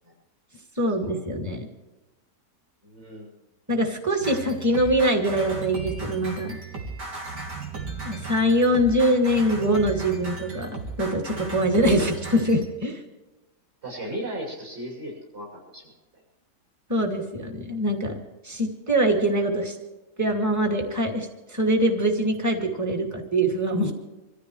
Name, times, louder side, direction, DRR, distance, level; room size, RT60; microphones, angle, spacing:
voice 1, 0.8-1.7 3.7-6.6 8.0-10.7 11.0-13.0 16.9-18.2 18.4-19.8 20.2-23.9, right 1 dB, 10° right, 2 dB, 2.4 m, -23 dB
voice 2, 2.8-3.3 13.8-15.9, right 1 dB, 40° right, -3 dB, 7.1 m, -36 dB
sound 1, 4.2-12.7, right 4 dB, 80° right, 3.5 m, -36 dB
26.5 x 14.5 x 3.2 m, 1.1 s
omnidirectional pair, 1.8 m